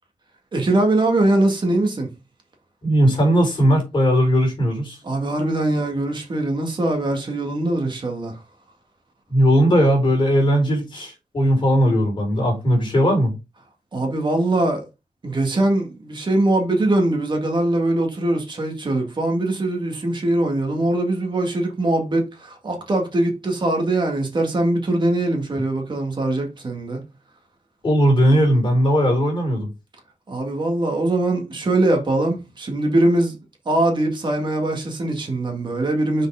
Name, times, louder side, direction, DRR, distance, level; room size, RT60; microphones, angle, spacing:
voice 1, 0.5-2.1 5.0-8.4 13.9-14.9 15.2-27.0 30.3-33.4 33.7-36.3, right 2 dB, 35° right, 1.9 m, -22 dB
voice 2, 2.8-5.0 9.3-13.3 27.8-29.7, equal, 40° left, 3.9 m, -18 dB
6.3 x 5.3 x 3.6 m
wide cardioid pair, 180°, 13 cm